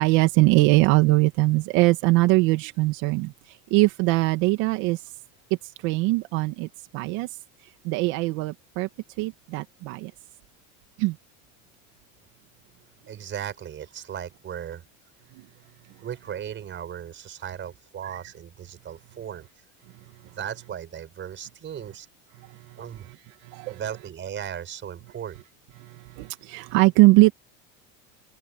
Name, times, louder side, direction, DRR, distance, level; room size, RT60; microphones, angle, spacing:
voice 1, 0.0-5.0 5.8-6.7 6.9-7.3 7.8-8.9 9.2-10.1 11.0-11.2 23.4-23.8 25.9-27.3, right 21 dB, 70° right, 2.2 m, -21 dB
voice 2, 13.1-14.9 16.0-19.5 20.2-22.1 22.8-23.1 23.7-25.4, right 9 dB, 30° right, 5.4 m, -36 dB
open air
cardioid pair, 155°, 37 cm